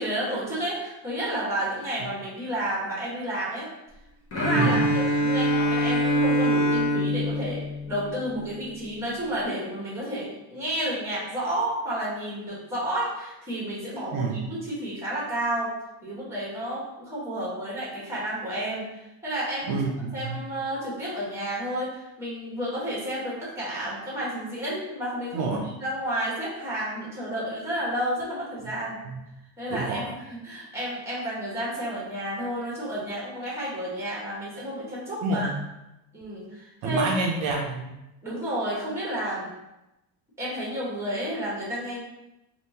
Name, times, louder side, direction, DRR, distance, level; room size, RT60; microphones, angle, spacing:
voice 1, 0.0-3.7 4.3-15.7 16.0-18.9 19.2-19.8 20.1-29.0 29.6-35.5 36.1-37.1 38.2-39.5 40.4-42.0, right 1 dB, 5° right, -6 dB, 1.1 m, -31 dB
Bowed string instrument, 4.3-8.4, equal, 30° left, 0.9 m, -24 dB
voice 2, 4.6-4.9 14.1-14.5 19.7-20.4 25.3-25.6 29.1-29.2 29.7-30.0 35.2-35.6 36.8-37.9, right 3 dB, 55° right, -2 dB, 0.6 m, -28 dB
3.5 x 2.5 x 2.7 m, 0.94 s
cardioid pair, 140°, 46 cm